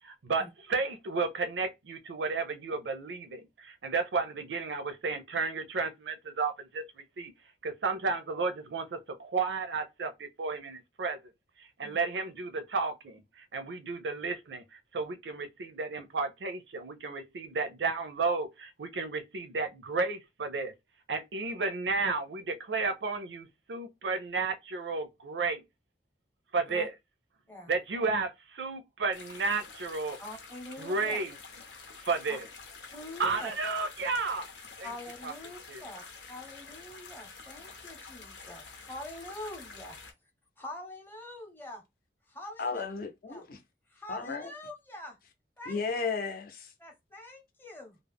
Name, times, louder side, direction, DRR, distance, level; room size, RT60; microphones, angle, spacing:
voice 1, 0.0-7.3 7.6-11.2 11.6-20.7 21.1-25.6 26.5-26.9 27.7-30.2 30.8-31.4 32.0-32.5 33.2-34.5 34.8-34.9 35.2-35.3 35.7-35.8, right 4 dB, 80° right, 0.5 m, -33 dB
sound 1, 29.1-40.1, left 4 dB, 90° left, 0.7 m, -48 dB
voice 2, 30.2-31.2 32.3-32.4 32.9-33.5 34.8-40.0 40.6-41.8 42.3-42.8 43.3-43.4 43.9-45.2 45.6-45.8 46.8-48.0, left 1 dB, 10° left, 0.7 m, -45 dB
voice 3, 42.6-43.6 44.1-44.5 45.7-46.7, left 4 dB, 55° left, 0.6 m, -34 dB
2.3 x 2.0 x 3.4 m
head